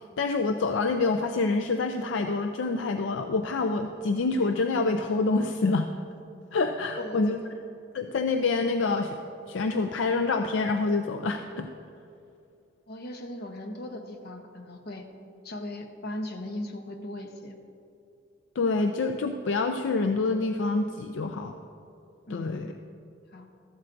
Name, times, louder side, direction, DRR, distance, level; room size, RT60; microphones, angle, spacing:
voice 1, 0.2-5.9 6.5-7.4 7.9-9.2 9.5-11.7 18.6-21.6 22.3-22.7, left 3 dB, 75° left, 6 dB, 0.4 m, -27 dB
voice 2, 7.0-7.5 12.9-15.1 15.4-17.6 22.3-22.7 23.3-23.5, left 1 dB, 55° left, 5 dB, 0.9 m, -38 dB
14.0 x 12.0 x 2.6 m, 2.5 s
head